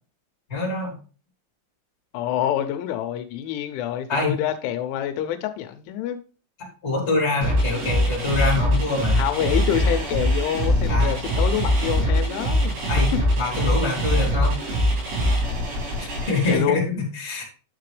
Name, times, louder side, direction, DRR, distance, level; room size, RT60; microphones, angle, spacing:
voice 1, 0.5-1.0 4.1-4.3 6.8-9.2 10.9-11.2 12.9-13.1 13.4-14.6 15.9-17.4, left 3 dB, 15° left, 2.6 m, -25 dB
voice 2, 2.1-6.2 9.1-12.8 16.5-16.8, left 11 dB, 85° left, 3.2 m, -26 dB
sound 1, 7.4-16.6, equal, 85° right, 7.0 m, -22 dB
9.8 x 7.6 x 3.3 m
omnidirectional pair, 5.4 m